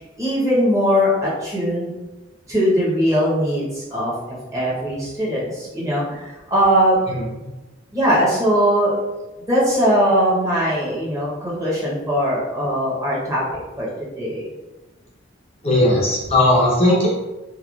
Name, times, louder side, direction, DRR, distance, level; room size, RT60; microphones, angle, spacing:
voice 1, 0.2-1.9 2.5-7.0 7.9-8.9 9.5-13.4 13.8-13.9 14.2-14.5, equal, 15° right, -7 dB, 0.9 m, -20 dB
voice 2, 15.6-17.1, left 1 dB, 30° left, -5 dB, 0.6 m, -17 dB
3.0 x 2.3 x 2.4 m, 1.1 s
head